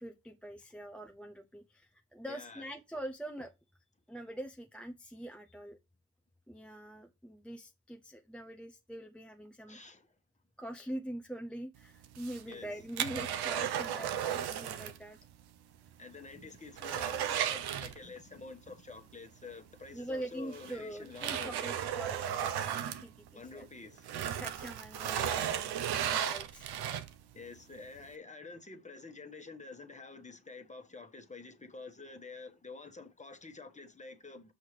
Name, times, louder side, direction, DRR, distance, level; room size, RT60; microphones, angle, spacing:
voice 1, 0.0-3.5 4.1-5.8 6.5-9.8 10.6-15.2 19.9-23.7 24.4-26.7, right 1 dB, 5° left, 0.5 m, -44 dB
voice 2, 2.3-2.7 9.7-10.1 12.4-12.7 16.0-21.9 23.3-24.1 27.3-34.5, left 4 dB, 20° left, 1.2 m, -48 dB
sound 1, 12.0-15.0 15.3-15.4 15.9-16.0 16.3-18.4 19.8-19.9 20.5-23.6 24.0-27.3 27.8-27.9, right 9 dB, 85° right, 0.7 m, -35 dB
6.3 x 5.6 x 3.2 m
cardioid pair, 90°, 38 cm